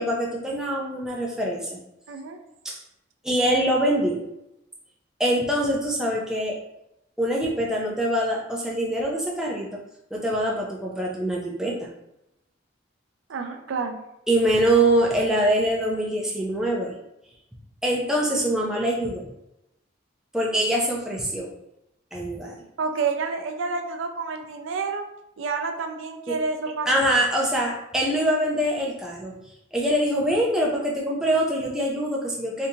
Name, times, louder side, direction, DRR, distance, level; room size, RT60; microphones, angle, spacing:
voice 1, 0.0-1.8 2.6-2.8 3.2-4.2 5.2-6.6 7.2-9.8 10.1-11.9 14.3-16.9 17.8-19.2 20.3-21.5 22.1-22.5 26.3-26.4 26.9-29.3 29.7-32.7, right 1 dB, 5° right, -3 dB, 0.5 m, -24 dB
voice 2, 2.1-2.4 13.3-14.0 22.8-25.0 25.4-27.0, right 4 dB, 85° right, 5 dB, 0.4 m, -29 dB
3.5 x 2.7 x 2.7 m, 0.85 s
head